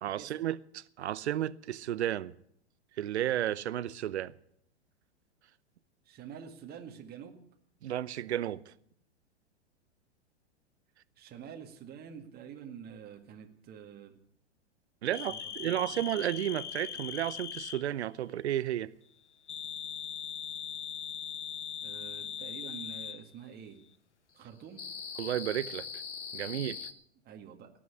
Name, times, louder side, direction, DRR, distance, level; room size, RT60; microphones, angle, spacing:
voice 1, 0.0-2.3 3.0-4.3 7.8-8.7 15.0-18.9 25.2-25.9 26.3-26.9, right 12 dB, 75° right, 0.8 m, -33 dB
voice 2, 6.1-7.4 11.2-14.2 15.0-16.0 21.8-23.8 24.3-24.8 27.2-27.7, right 8 dB, 30° right, 1.9 m, -47 dB
sound 1, 15.1-17.8 19.5-23.2 24.8-26.9, left 8 dB, 85° left, 1.2 m, -40 dB
18.0 x 6.3 x 9.7 m
hypercardioid pair, 105°, 34 cm